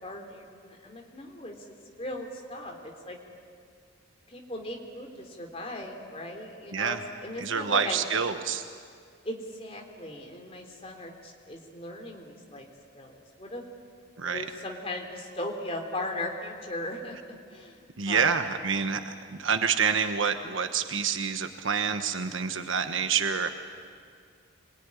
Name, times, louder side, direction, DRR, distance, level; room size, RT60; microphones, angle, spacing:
voice 1, 0.0-3.2 4.3-8.0 9.2-12.7 12.9-13.6 14.3-18.3, left 1 dB, 30° left, 2 dB, 3.5 m, -38 dB
voice 2, 7.4-8.6 14.2-14.4 18.0-23.5, right 6 dB, 75° right, 7 dB, 1.3 m, -27 dB
27.5 x 21.5 x 9.9 m, 2.2 s
head